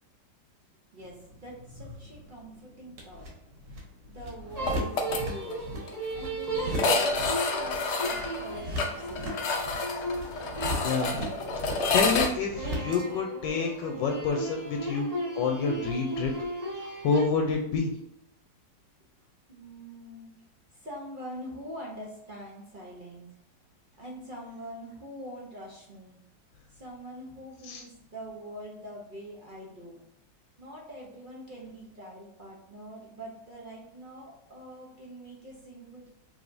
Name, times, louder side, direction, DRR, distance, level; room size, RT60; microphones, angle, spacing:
voice 1, 0.9-3.3 4.0-5.7 6.1-9.3 19.5-20.3 20.7-23.3 24.0-26.2 26.7-30.0 30.6-36.1, equal, 50° right, -3 dB, 0.6 m, -44 dB
sound 1, 1.0-13.0, equal, 80° right, 1.8 m, -39 dB
sound 2, 4.5-11.9 12.5-17.3, right 1 dB, 25° right, 1.0 m, -36 dB
sound 3, 4.7-5.2 5.5-5.6 5.9-6.0 6.7-12.3, left 3 dB, 70° left, 0.6 m, -29 dB
voice 2, 10.8-11.1 11.6-16.3 17.0-17.9 27.7-27.8, left 5 dB, 90° left, 2 dB, 1.3 m, -28 dB
4.8 x 3.3 x 2.6 m, 0.84 s
omnidirectional pair, 1.9 m